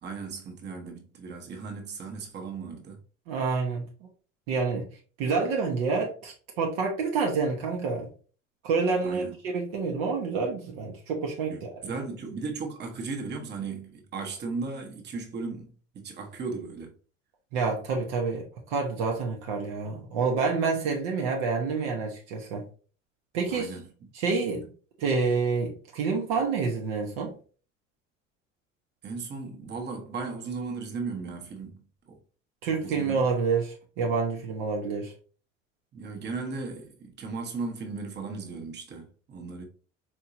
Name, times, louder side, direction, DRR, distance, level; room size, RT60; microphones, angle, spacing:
voice 1, 0.0-3.0 9.0-9.4 11.5-15.7 15.9-16.9 23.5-23.9 29.0-31.8 32.1-32.2 32.6-33.3 35.9-39.6, right 4 dB, 25° right, 1.0 m, -36 dB
voice 2, 3.3-3.9 4.5-4.9 5.2-8.1 8.6-11.9 17.5-22.6 23.3-23.7 24.1-24.7 25.0-27.4 32.6-35.1, right 4 dB, 55° right, 0.8 m, -28 dB
4.5 x 2.7 x 2.6 m
figure-of-eight pair, 65°, 38 cm